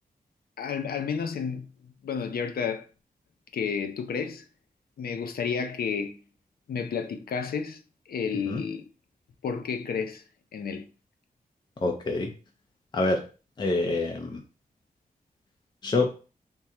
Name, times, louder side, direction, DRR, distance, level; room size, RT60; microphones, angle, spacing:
voice 1, 0.6-2.9 3.5-4.4 5.0-6.2 6.7-7.8 8.1-8.9 9.4-10.2 10.5-10.9, left 6 dB, 85° left, 0.4 m, -31 dB
voice 2, 11.8-12.3 12.9-13.2 13.6-14.4 15.8-16.2, left 2 dB, 30° left, 0.4 m, -26 dB
3.6 x 2.1 x 4.3 m
wide cardioid pair, 180°, 15 cm